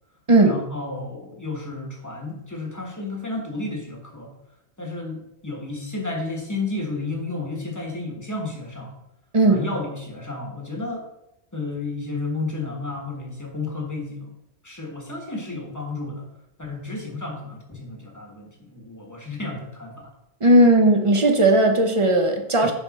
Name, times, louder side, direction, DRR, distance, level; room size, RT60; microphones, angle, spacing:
voice 1, 0.4-4.4 4.8-9.0 9.5-11.1 11.5-14.3 14.6-16.3 16.6-20.1 22.6-22.7, left 3 dB, 15° left, 0 dB, 1.3 m, -32 dB
voice 2, 20.4-22.7, right 1 dB, 30° right, 4 dB, 0.8 m, -16 dB
10.0 x 3.5 x 4.2 m, 0.85 s
omnidirectional pair, 1.2 m